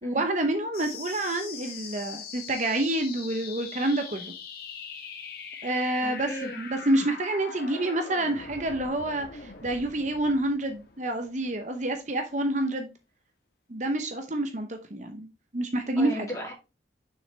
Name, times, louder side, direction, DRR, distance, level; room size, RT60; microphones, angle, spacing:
voice 1, 0.0-4.3 5.6-6.3 6.6-12.9 13.7-15.3 15.5-16.3, right 1 dB, 40° right, 0.8 m, -28 dB
sound 1, 0.7-11.8, left 5 dB, 55° left, 1.4 m, -42 dB
voice 2, 6.0-6.6 16.0-16.5, equal, 15° left, 2.7 m, -36 dB
7.0 x 6.0 x 3.3 m
head